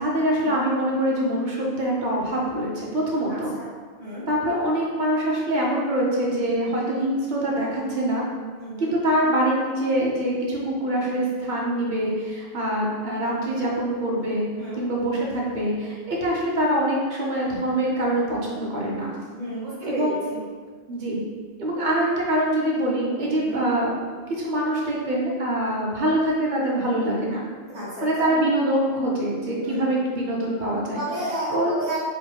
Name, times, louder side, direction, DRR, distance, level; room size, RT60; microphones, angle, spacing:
voice 1, 0.0-3.5 4.3-8.2 8.8-14.4 14.7-19.1 19.8-20.2 20.9-21.2 21.6-23.9 24.4-27.4 28.0-31.0 31.5-31.7, right 1 dB, 40° right, -4 dB, 0.9 m, -24 dB
voice 2, 3.3-3.7 4.0-4.3 8.6-8.9 14.6-14.8 19.3-20.4 23.3-23.6 27.7-28.3 29.6-30.0 30.9-32.0, right 1 dB, 85° right, -11 dB, 1.9 m, -32 dB
4.4 x 2.2 x 4.5 m, 1.5 s
omnidirectional pair, 1.4 m